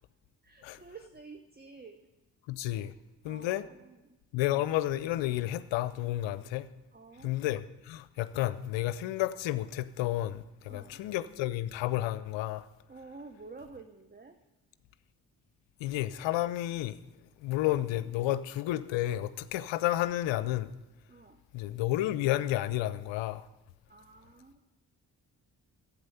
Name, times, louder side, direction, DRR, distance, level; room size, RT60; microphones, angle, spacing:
voice 1, 0.4-2.0 2.8-2.9 3.2-4.2 6.3-6.5 6.9-7.3 10.7-11.1 12.9-14.4 21.1-21.4 23.9-24.6, right 4 dB, 20° right, 0.9 m, -50 dB
voice 2, 2.5-2.9 3.2-3.6 4.3-6.7 7.2-12.7 15.8-17.0 17.4-20.7 21.5-23.5, left 14 dB, 70° left, 0.6 m, -31 dB
12.0 x 8.4 x 5.6 m
hypercardioid pair, 40°, 46 cm